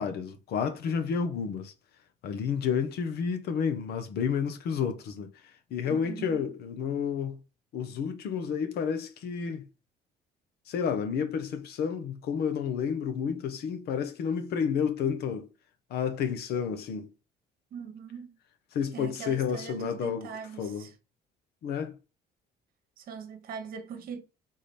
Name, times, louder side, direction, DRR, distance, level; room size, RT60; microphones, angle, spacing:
voice 1, 0.0-1.7 2.2-5.3 5.7-7.4 7.7-9.6 10.7-15.5 15.9-17.1 18.7-20.3 20.6-20.9 21.6-22.0, left 7 dB, 70° left, 0.9 m, -30 dB
voice 2, 5.9-6.5 17.7-18.4 18.9-20.9 23.0-24.2, right 6 dB, 60° right, 1.0 m, -41 dB
3.8 x 3.3 x 4.2 m
cardioid pair, 110°, 17 cm